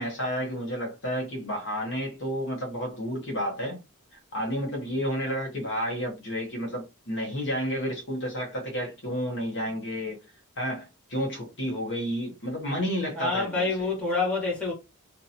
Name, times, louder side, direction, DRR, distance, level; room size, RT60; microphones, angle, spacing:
voice 1, 0.0-3.8 4.3-10.2 10.6-13.9, equal, 55° left, 1.1 m, -31 dB
voice 2, 13.1-14.7, left 3 dB, 5° left, 1.4 m, -27 dB
2.8 x 2.6 x 2.7 m
head